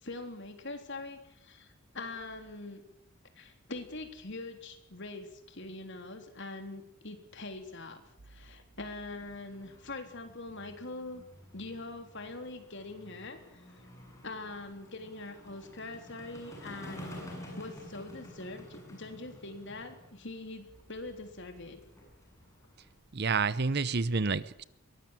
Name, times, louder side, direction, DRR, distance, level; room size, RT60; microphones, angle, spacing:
voice 1, 0.0-2.8 3.4-11.2 11.5-13.6 14.2-17.2 17.6-21.8, left 2 dB, 55° left, 6 dB, 3.5 m, -43 dB
sound 1, 9.1-22.9, left 1 dB, 15° left, 7.9 m, -51 dB
voice 2, 23.1-24.6, right 4 dB, 50° right, 17 dB, 0.8 m, -29 dB
22.5 x 18.5 x 9.0 m, 0.75 s
head